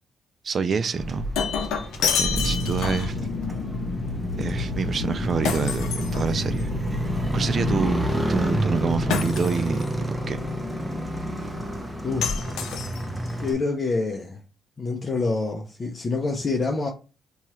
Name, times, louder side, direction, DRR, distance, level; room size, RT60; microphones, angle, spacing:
voice 1, 0.4-1.3 2.2-3.2 4.4-6.7 7.3-10.4, right 5 dB, 45° right, 0.4 m, -27 dB
Shatter, 1.0-3.2 5.5-6.7 9.1-9.9 12.2-13.3, left 6 dB, 90° left, 0.6 m, -28 dB
Motorcycle, 1.0-13.5, right 1 dB, 10° right, 0.7 m, -30 dB
sound 1, 2.3-13.5, left 2 dB, 55° left, 0.9 m, -31 dB
voice 2, 12.0-12.6 13.4-14.4 14.8-16.9, left 3 dB, 35° left, 0.6 m, -27 dB
3.0 x 2.3 x 4.2 m
cardioid pair, 90°, 0 cm